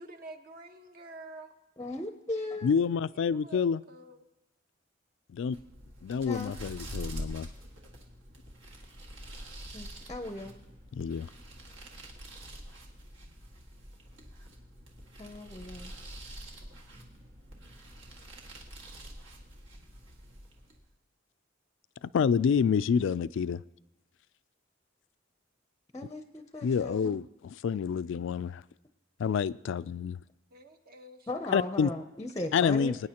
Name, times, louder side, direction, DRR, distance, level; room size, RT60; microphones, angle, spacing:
voice 1, 0.0-1.5 3.2-4.2 30.5-31.6 32.4-32.5 32.8-32.9, right 2 dB, 50° right, 6 dB, 1.0 m, -49 dB
voice 2, 1.8-2.7 6.2-6.5 9.7-10.5 15.2-15.9 25.9-27.2 31.3-33.0, left 2 dB, 15° left, 7 dB, 0.6 m, -37 dB
voice 3, 2.6-3.8 5.3-5.6 6.0-7.5 10.9-11.3 22.0-23.6 26.6-28.6 29.2-30.2 31.5-31.9 32.5-33.0, left 6 dB, 65° left, 18 dB, 0.3 m, -28 dB
sound 1, 5.4-20.9, right 1 dB, 70° right, 1.8 m, -46 dB
23.0 x 9.5 x 2.9 m, 0.96 s
head